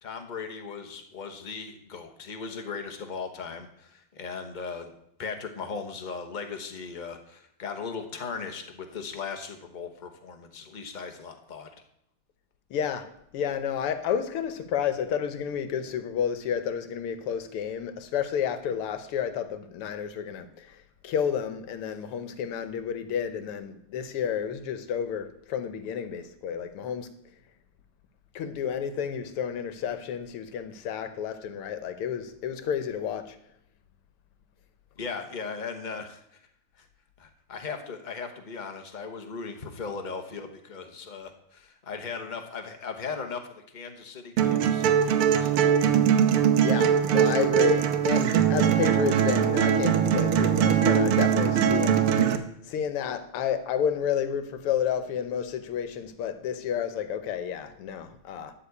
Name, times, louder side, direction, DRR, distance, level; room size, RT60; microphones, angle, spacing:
voice 1, 0.0-4.9 5.2-11.7 35.0-36.2 36.8-36.9 37.2-46.0, left 5 dB, 35° left, 0.8 m, -38 dB
voice 2, 12.7-27.1 28.4-33.4 46.6-52.0 52.6-58.5, left 8 dB, 85° left, 1.9 m, -31 dB
sound 1, 44.4-52.4, right 8 dB, 90° right, 1.7 m, -22 dB
12.5 x 4.2 x 8.3 m
omnidirectional pair, 2.4 m